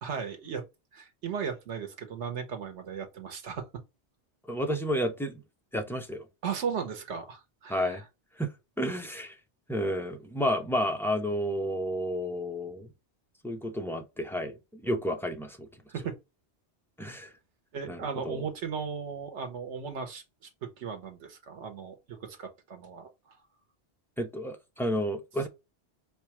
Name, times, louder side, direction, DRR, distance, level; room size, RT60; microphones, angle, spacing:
voice 1, 0.0-0.6 0.9-3.7 6.4-8.0 15.9-16.1 17.7-20.2 20.6-23.1, right 6 dB, 90° right, 1.3 m, -36 dB
voice 2, 4.5-5.4 5.7-6.2 7.7-8.0 8.4-8.5 8.8-9.3 9.7-12.9 13.4-15.7 17.0-17.3 17.9-18.4 24.2-25.5, equal, 5° left, 0.5 m, -31 dB
4.9 x 2.3 x 2.9 m
omnidirectional pair, 1.2 m